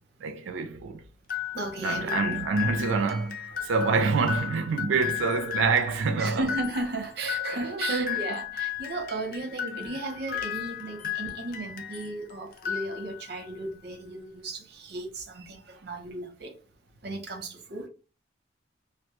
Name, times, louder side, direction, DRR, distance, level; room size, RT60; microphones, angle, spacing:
voice 1, 0.2-1.0 1.8-6.5 7.2-8.3 9.6-9.8 11.0-11.1, right 4 dB, 90° right, 0.3 m, -27 dB
sound 1, 1.3-12.2 12.5-13.4, left 10 dB, 50° left, 0.4 m, -35 dB
voice 2, 1.5-2.4 6.2-16.5 17.0-17.9, right 2 dB, 55° right, 0.7 m, -35 dB
2.1 x 2.0 x 2.8 m
head